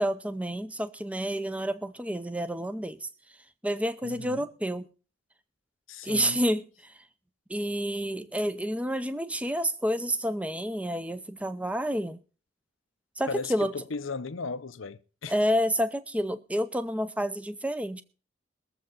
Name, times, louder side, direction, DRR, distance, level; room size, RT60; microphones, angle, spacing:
voice 1, 0.0-3.1 3.6-4.9 6.0-7.0 7.5-12.2 13.2-13.7 15.3-18.0, equal, 5° right, 0.5 m, -29 dB
voice 2, 4.0-4.5 5.9-6.4 13.3-15.3, left 4 dB, 80° left, 0.7 m, -36 dB
22.0 x 7.6 x 4.1 m
head